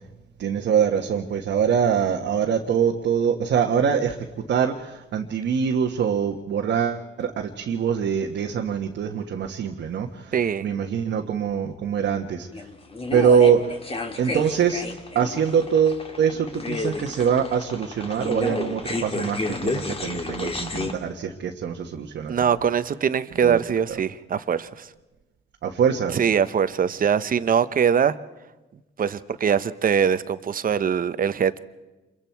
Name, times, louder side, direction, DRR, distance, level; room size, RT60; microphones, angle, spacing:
voice 1, 0.4-10.3 10.6-12.7 13.1-13.8 14.2-14.9 15.1-22.3 23.4-23.6 23.9-24.0 25.6-26.3, right 7 dB, 65° right, 1.4 m, -23 dB
voice 2, 10.3-10.7 22.3-24.9 26.1-28.1 29.0-31.6, right 7 dB, 45° right, 0.9 m, -22 dB
sound 1, 12.5-20.9, left 2 dB, 30° left, 2.4 m, -31 dB
27.5 x 23.0 x 4.6 m
cardioid pair, 90°, 20 cm